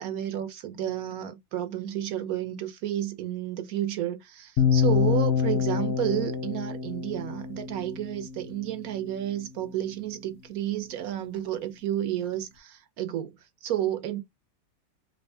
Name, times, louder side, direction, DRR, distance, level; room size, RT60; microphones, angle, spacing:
voice 1, 0.0-13.3 13.6-14.2, right 12 dB, 80° right, 1.2 m, -31 dB
sound 1, 4.6-8.6, left 7 dB, 65° left, 0.7 m, -26 dB
2.9 x 2.6 x 3.3 m
omnidirectional pair, 1.5 m